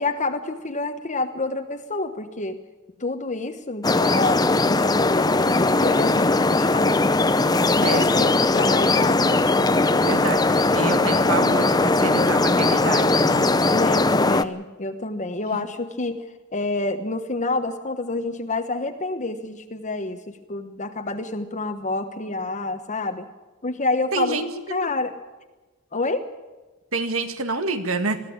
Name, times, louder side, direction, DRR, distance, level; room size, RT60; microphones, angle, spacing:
voice 1, 0.0-2.6 3.0-7.1 7.7-9.3 13.7-16.2 16.5-20.2 20.5-23.3 23.6-24.4 24.7-25.1 25.9-26.3, left 2 dB, 35° left, 5 dB, 1.2 m, -28 dB
sound 1, 3.8-14.4, left 2 dB, 20° left, 0.7 m, -19 dB
voice 2, 7.8-8.4 10.0-13.8 24.1-24.9 26.9-28.2, right 3 dB, 65° right, 8 dB, 2.1 m, -28 dB
21.5 x 15.0 x 8.7 m, 1.2 s
head